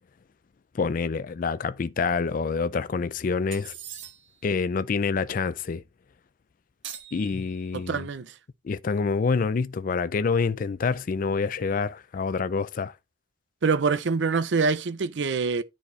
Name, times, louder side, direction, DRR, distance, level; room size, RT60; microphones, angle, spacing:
voice 1, 0.7-3.7 4.4-5.8 7.1-8.1 8.6-12.9, left 5 dB, 45° left, 0.4 m, -27 dB
sound 1, 3.5-4.5 6.8-7.9, right 9 dB, 85° right, 1.2 m, -42 dB
voice 2, 7.7-8.3 13.6-15.6, right 4 dB, 70° right, 0.6 m, -25 dB
9.7 x 4.3 x 3.2 m
head